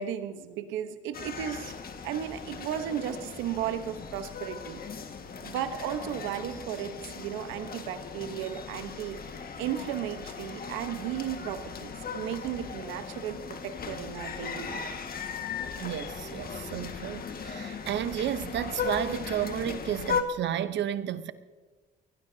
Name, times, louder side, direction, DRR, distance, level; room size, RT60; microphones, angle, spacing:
voice 1, 0.0-1.7 2.0-4.8 5.4-9.2 9.6-14.9, right 10 dB, 85° right, 1.2 m, -35 dB
sound 1, 1.1-20.2, left 5 dB, 50° left, 1.8 m, -38 dB
voice 2, 15.8-21.3, right 10 dB, 65° right, 1.0 m, -32 dB
23.5 x 18.5 x 2.8 m
supercardioid pair, 65°, 19 cm